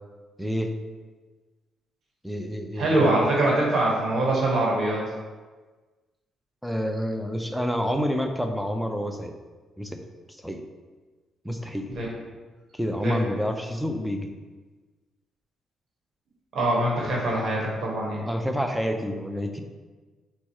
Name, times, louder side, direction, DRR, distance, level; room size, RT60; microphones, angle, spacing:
voice 1, 0.4-0.7 2.2-3.1 6.6-9.3 9.8-10.0 10.4-10.6 11.4-11.9 12.7-14.3 18.3-19.6, equal, ahead, 5 dB, 0.4 m, -28 dB
voice 2, 2.7-5.0 11.9-12.1 13.0-13.2 16.5-18.2, right 1 dB, 55° right, -3 dB, 1.3 m, -23 dB
4.2 x 2.3 x 4.5 m, 1.3 s
cardioid pair, 90°, 0 cm